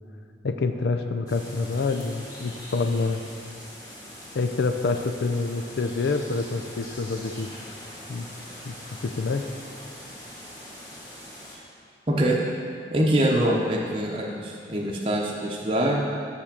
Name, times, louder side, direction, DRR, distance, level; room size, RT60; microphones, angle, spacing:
voice 1, 0.4-3.2 4.3-7.6 8.1-8.3 8.7-9.4, left 3 dB, 70° left, 7 dB, 0.4 m, -27 dB
sound 1, 1.3-11.6, left 1 dB, 20° left, 1.8 m, -42 dB
voice 2, 12.1-12.4 12.9-16.0, right 1 dB, 30° right, -3 dB, 0.7 m, -24 dB
6.2 x 5.9 x 6.7 m, 2.3 s
head